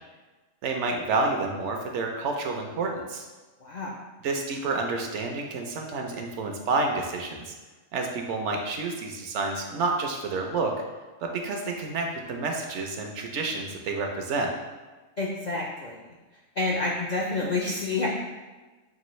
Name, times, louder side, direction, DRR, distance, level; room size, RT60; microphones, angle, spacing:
voice 1, 0.6-3.3 4.2-7.5 7.9-10.7 11.2-14.5, right 3 dB, 70° right, 2 dB, 0.9 m, -29 dB
voice 2, 3.6-3.9 15.2-16.0 16.6-18.1, left 3 dB, 60° left, -4 dB, 0.4 m, -28 dB
6.0 x 2.5 x 3.0 m, 1.2 s
omnidirectional pair, 1.3 m